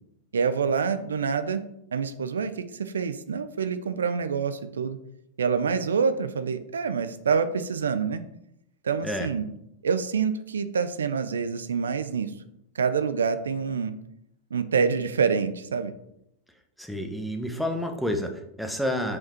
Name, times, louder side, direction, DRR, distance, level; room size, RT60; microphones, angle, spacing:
voice 1, 0.3-1.6 1.9-5.0 5.4-8.2 8.8-9.5 9.8-12.3 12.7-13.9 14.5-15.9, right 6 dB, 85° right, 11 dB, 0.5 m, -26 dB
voice 2, 16.8-19.2, left 1 dB, ahead, 4 dB, 1.1 m, -29 dB
5.9 x 5.1 x 4.5 m, 0.79 s
hypercardioid pair, 100°, 0 cm